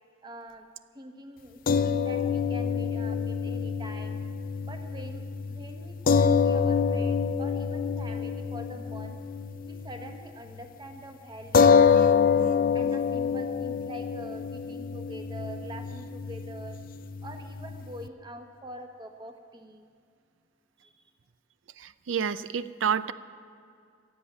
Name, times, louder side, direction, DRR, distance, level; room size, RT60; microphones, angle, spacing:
voice 1, 0.2-0.7 0.9-4.2 4.6-9.2 9.7-11.8 12.7-16.8 17.2-19.9 20.8-21.1, equal, 25° right, 5 dB, 1.2 m, -44 dB
sound 1, 1.7-10.2 10.5-10.7 11.5-18.1, left 6 dB, 50° left, 0.5 m, -26 dB
voice 2, 21.8-23.1, right 7 dB, 80° right, 14 dB, 0.5 m, -29 dB
15.5 x 8.1 x 8.6 m, 2.3 s
head